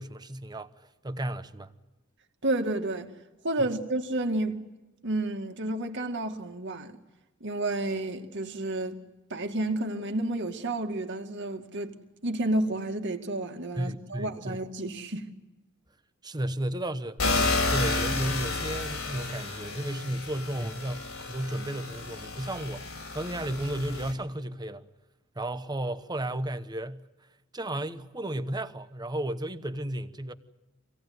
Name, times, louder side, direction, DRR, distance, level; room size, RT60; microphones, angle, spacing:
voice 1, 0.0-1.7 3.6-3.7 13.8-14.6 16.2-17.3 17.7-24.9 25.3-27.1 27.5-30.3, right 1 dB, 20° right, 1.0 m, -33 dB
voice 2, 2.4-3.1 3.4-4.6 5.0-7.0 7.4-9.0 9.3-11.9 12.2-15.3, right 2 dB, 55° right, 2.1 m, -30 dB
sound 1, 17.2-24.1, left 3 dB, 90° left, 4.9 m, -31 dB
26.0 x 17.5 x 9.5 m
head